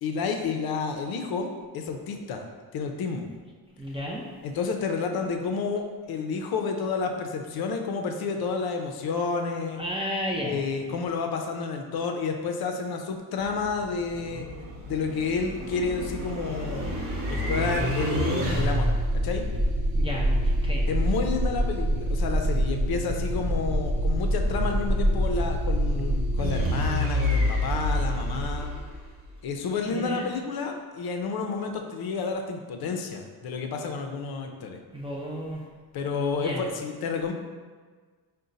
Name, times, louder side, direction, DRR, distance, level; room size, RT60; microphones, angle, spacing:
voice 1, 0.0-2.4 2.7-3.2 4.4-9.8 10.4-14.5 14.9-17.0 17.3-18.9 19.2-19.4 20.9-28.7 29.4-34.8 35.9-37.3, left 4 dB, 55° left, 4 dB, 0.5 m, -30 dB
voice 2, 3.8-4.3 9.8-10.6 19.9-20.9 29.9-30.3 34.9-35.6 36.4-36.7, equal, 15° right, -4 dB, 0.4 m, -32 dB
sound 1, 13.4-29.4, equal, 30° right, 0.8 m, -26 dB
3.8 x 2.2 x 3.9 m, 1.5 s
cardioid pair, 85°, 46 cm